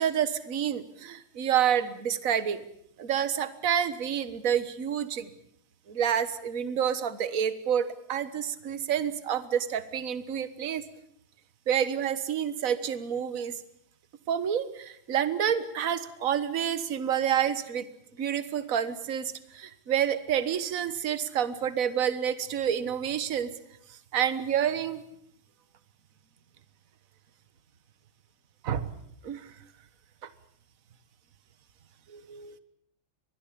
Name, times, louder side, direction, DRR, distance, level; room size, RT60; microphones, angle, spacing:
voice 1, 0.0-2.7 3.0-5.3 5.9-10.8 11.7-13.6 14.3-17.8 18.2-23.5 24.1-25.0 28.6-28.9 29.2-29.4 32.1-32.6, right 9 dB, 45° right, 13 dB, 1.7 m, -28 dB
24.0 x 19.5 x 8.6 m, 0.72 s
omnidirectional pair, 2.2 m